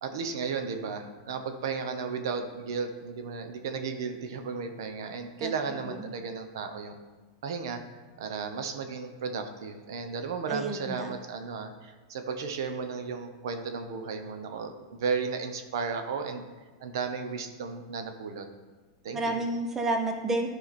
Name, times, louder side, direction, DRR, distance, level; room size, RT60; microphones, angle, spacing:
voice 1, 0.0-7.0 7.4-7.8 8.2-16.4 16.8-18.5 19.0-19.4, right 5 dB, 75° right, 7 dB, 1.0 m, -34 dB
voice 2, 10.5-11.1 19.1-20.5, right 2 dB, 15° right, 4 dB, 0.9 m, -30 dB
12.0 x 5.0 x 4.3 m, 1.3 s
supercardioid pair, 150°, 2 cm